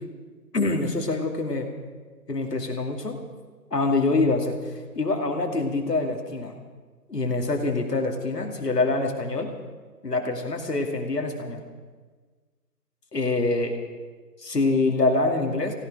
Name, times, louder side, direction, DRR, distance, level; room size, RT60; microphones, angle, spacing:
voice 1, 0.5-1.7 2.3-3.2 3.7-6.5 7.1-9.5 10.0-11.6 13.1-13.7 14.4-15.7, left 3 dB, 70° left, 2 dB, 2.7 m, -25 dB
16.5 x 16.5 x 5.0 m, 1.4 s
figure-of-eight pair, 180°, 49 cm